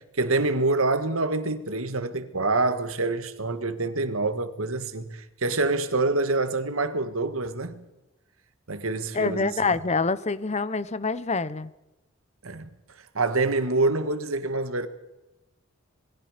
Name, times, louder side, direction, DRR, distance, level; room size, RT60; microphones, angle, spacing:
voice 1, 0.0-7.8 8.7-9.7 12.4-12.7 13.1-14.9, right 3 dB, 80° right, 1.8 m, -26 dB
voice 2, 9.1-11.7, left 4 dB, 30° left, 0.9 m, -26 dB
27.0 x 21.5 x 5.2 m
head